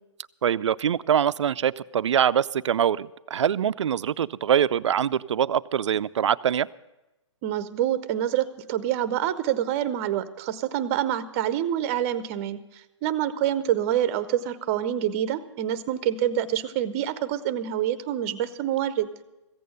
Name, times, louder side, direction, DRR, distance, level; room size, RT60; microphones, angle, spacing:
voice 1, 0.4-6.7, right 9 dB, 70° right, 17 dB, 0.4 m, -24 dB
voice 2, 7.4-12.6 13.0-19.1, right 11 dB, 30° right, 14 dB, 0.7 m, -26 dB
15.0 x 8.6 x 6.7 m, 0.99 s
hypercardioid pair, 140°, 16 cm